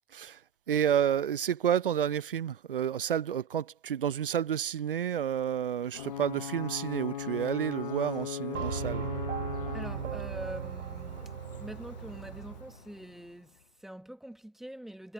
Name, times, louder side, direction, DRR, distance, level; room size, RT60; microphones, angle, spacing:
voice 1, 0.7-9.1, right 9 dB, 50° right, 0.5 m, -30 dB
Ocean / Boat Water vehicle / Alarm, 5.9-13.5, left 9 dB, 35° left, 0.8 m, -40 dB
sound 1, 8.5-12.8, right 9 dB, 90° right, 0.6 m, -37 dB
voice 2, 9.7-15.1, right 1 dB, ahead, 1.3 m, -44 dB
hypercardioid pair, 155°, 36 cm